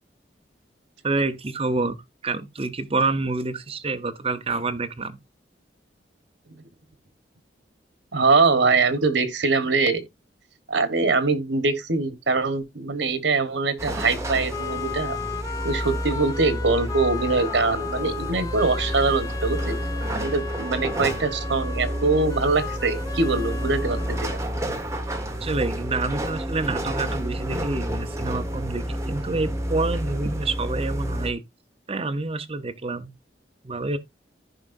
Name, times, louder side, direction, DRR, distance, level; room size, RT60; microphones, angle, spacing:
voice 1, 1.0-5.2 25.4-31.4 31.9-33.1 33.6-34.0, right 3 dB, 35° right, 0.8 m, -27 dB
voice 2, 8.1-10.0 10.7-15.2 15.6-19.8 20.2-24.4, right 3 dB, 85° right, 1.3 m, -23 dB
sound 1, 13.8-31.3, equal, 15° right, 1.5 m, -30 dB
sound 2, 13.9-24.9, left 6 dB, 20° left, 0.4 m, -36 dB
14.5 x 5.0 x 2.6 m
head